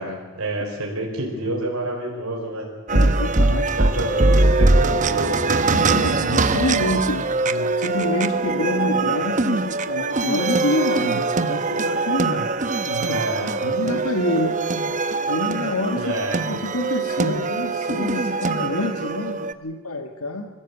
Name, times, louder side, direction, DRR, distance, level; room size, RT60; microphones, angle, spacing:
voice 1, 0.0-2.6 3.8-5.3 13.0-13.6 16.0-16.4, right 1 dB, 85° right, -1 dB, 4.5 m, -28 dB
Bowed string instrument, 2.6-5.8, left 2 dB, 35° left, 5.7 m, -47 dB
voice 2, 2.9-3.8 5.7-13.2 13.6-14.6 15.3-16.0 16.5-20.5, left 1 dB, 85° left, 5 dB, 1.6 m, -27 dB
sound 1, 2.9-19.5, right 3 dB, 35° right, 0.8 m, -22 dB
24.0 x 15.5 x 8.3 m, 1.3 s
head